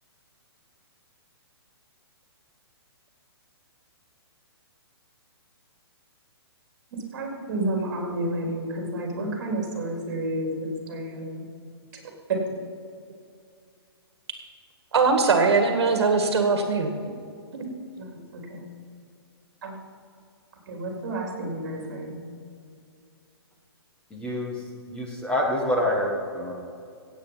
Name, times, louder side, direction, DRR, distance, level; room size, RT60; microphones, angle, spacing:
voice 1, 6.9-11.4 12.3-12.4 18.1-18.7 19.6-19.8 20.7-22.2, right 1 dB, 45° right, 1 dB, 3.6 m, -31 dB
voice 2, 14.9-16.9 17.5-17.6, right 4 dB, 75° right, 5 dB, 1.8 m, -21 dB
voice 3, 24.1-26.5, left 1 dB, 5° left, -2 dB, 1.4 m, -27 dB
16.5 x 8.4 x 5.7 m, 2.4 s
hypercardioid pair, 160°, 14 cm